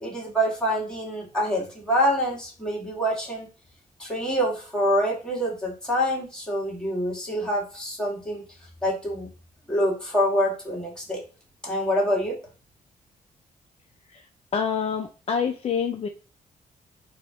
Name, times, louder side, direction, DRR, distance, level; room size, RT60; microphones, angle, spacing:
voice 1, 0.0-3.5 4.0-8.4 8.8-9.3 9.7-11.2 11.6-12.4, equal, 5° left, -4 dB, 1.7 m, -26 dB
voice 2, 14.5-16.1, left 6 dB, 45° left, 6 dB, 0.4 m, -27 dB
4.1 x 2.8 x 3.4 m, 0.36 s
cardioid pair, 120°, 15 cm